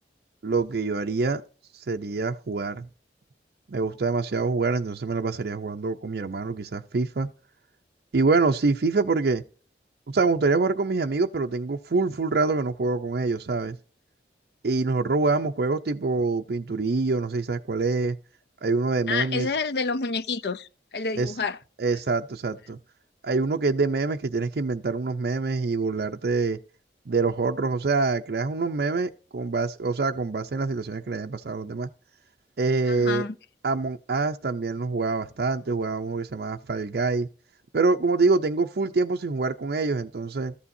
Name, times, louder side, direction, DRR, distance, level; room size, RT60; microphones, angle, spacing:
voice 1, 0.4-1.4 1.7-2.9 3.7-7.3 8.1-9.4 10.1-13.8 14.6-18.2 18.6-19.5 21.2-21.3 21.8-22.8 23.2-26.6 27.1-31.9 32.6-33.3 33.6-37.3 37.7-40.5, right 3 dB, 65° right, 0.5 m, -25 dB
voice 2, 19.1-21.6 32.9-33.4, left 4 dB, 70° left, 0.5 m, -28 dB
13.5 x 8.4 x 2.7 m
head